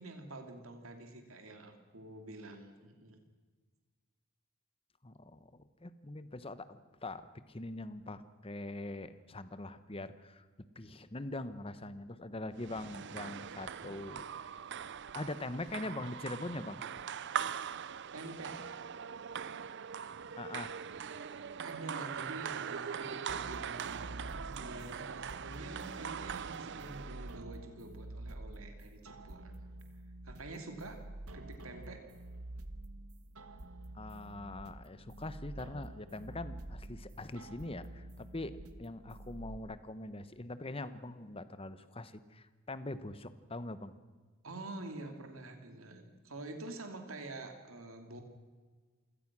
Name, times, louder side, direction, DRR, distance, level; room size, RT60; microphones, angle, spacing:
voice 1, 0.0-3.2 18.1-18.6 21.6-29.5 30.2-32.0 44.4-48.2, right 2 dB, 70° right, 5 dB, 2.8 m, -47 dB
voice 2, 5.0-5.5 5.8-7.2 7.5-10.4 10.7-14.5 15.1-16.8 20.4-20.8 33.9-38.5 38.8-44.0, left 2 dB, 25° left, 13 dB, 1.0 m, -43 dB
sound 1, 12.6-27.4, right 7 dB, 55° right, 0.6 m, -41 dB
sound 2, 23.3-39.6, right 1 dB, 85° right, 1.4 m, -48 dB
27.5 x 17.5 x 6.2 m, 1.4 s
head